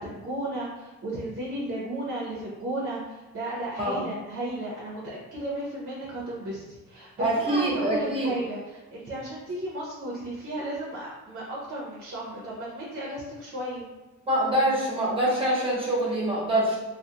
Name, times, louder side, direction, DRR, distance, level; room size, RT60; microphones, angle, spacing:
voice 1, 0.0-5.0 5.3-13.8, right 1 dB, 45° right, -5 dB, 0.6 m, -34 dB
voice 2, 7.2-8.3 14.2-16.8, right 1 dB, 15° right, -5 dB, 0.9 m, -25 dB
2.3 x 2.0 x 2.8 m, 1.1 s
cardioid pair, 120°, 31 cm